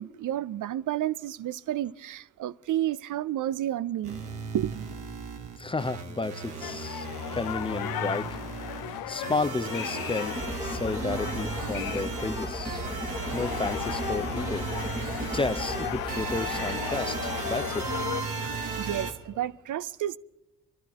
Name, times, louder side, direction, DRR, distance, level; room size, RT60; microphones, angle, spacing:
voice 1, 0.0-4.2 4.5-5.0 18.8-20.2, right 12 dB, 55° right, 0.5 m, -31 dB
sound 1, 4.0-19.1, right 4 dB, 80° right, 1.4 m, -36 dB
voice 2, 5.6-7.1 7.3-8.4 9.1-10.4 10.6-12.8 13.3-14.7 15.2-17.9, left 3 dB, 15° left, 0.6 m, -32 dB
sound 2, 6.6-18.2, left 11 dB, 65° left, 0.7 m, -36 dB
sound 3, 10.3-18.5, right 2 dB, 5° right, 1.1 m, -38 dB
26.5 x 12.5 x 3.0 m
supercardioid pair, 45°, 37 cm